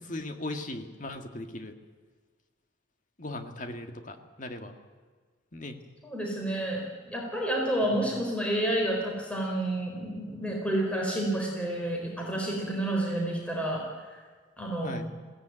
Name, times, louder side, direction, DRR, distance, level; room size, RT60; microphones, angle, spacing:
voice 1, 0.0-1.8 3.2-4.8 5.5-5.8 7.8-8.1 14.8-15.1, left 2 dB, 40° left, 6 dB, 2.0 m, -38 dB
voice 2, 6.0-13.8 14.1-14.2 14.6-15.0, right 1 dB, 5° left, -1 dB, 4.4 m, -30 dB
20.5 x 16.5 x 9.1 m, 1.5 s
head